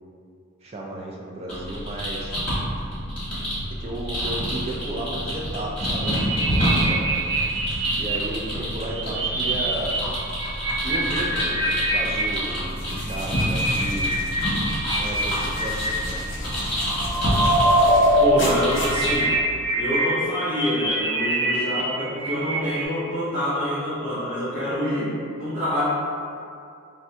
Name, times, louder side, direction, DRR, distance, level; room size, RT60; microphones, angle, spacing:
voice 1, 0.6-2.3 3.8-7.0 8.0-10.0 10.8-14.2 14.9-16.3, right 1 dB, 30° right, -2 dB, 0.3 m, -33 dB
sound 1, 1.5-19.2, equal, 5° left, 1.2 m, -28 dB
sound 2, 5.6-8.2 8.7-9.9 10.2-12.2 12.9-15.9 16.7-18.2 18.4-22.8, right 1 dB, 90° right, 0.7 m, -24 dB
sound 3, 12.7-19.7, left 1 dB, 60° left, 0.5 m, -36 dB
voice 2, 18.2-19.4 19.7-25.8, equal, 45° right, -14 dB, 0.8 m, -26 dB
3.4 x 2.1 x 2.7 m, 2.4 s
head